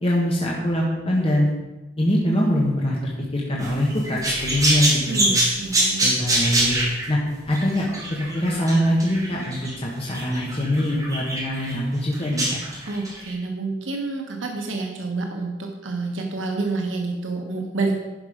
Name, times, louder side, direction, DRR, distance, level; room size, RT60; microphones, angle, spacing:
voice 1, 0.0-1.5 2.0-5.3 6.0-6.8 7.1-7.2 7.5-12.6, equal, 30° left, -3 dB, 1.3 m, -23 dB
sound 1, 3.6-9.7 10.0-11.7 12.1-13.3, right 1 dB, 20° right, 2.7 m, -24 dB
voice 2, 5.0-6.0 12.9-18.0, right 3 dB, 90° right, 2 dB, 1.1 m, -28 dB
11.5 x 5.3 x 5.0 m, 1.1 s
head